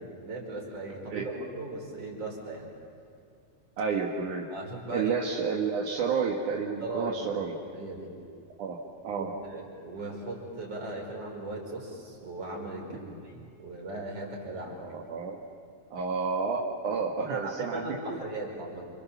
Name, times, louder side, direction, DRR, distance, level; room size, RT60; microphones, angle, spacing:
voice 1, 0.0-2.7 4.5-5.2 6.8-7.5 7.7-8.1 9.1-14.8 17.3-18.9, right 2 dB, 50° right, -1 dB, 6.5 m, -38 dB
voice 2, 3.8-4.5 4.9-7.6 8.6-8.8 9.0-9.3 13.0-13.1 14.8-15.4 15.9-18.2, right 5 dB, 75° right, -1 dB, 3.2 m, -30 dB
29.0 x 28.5 x 7.3 m, 2.4 s
omnidirectional pair, 3.5 m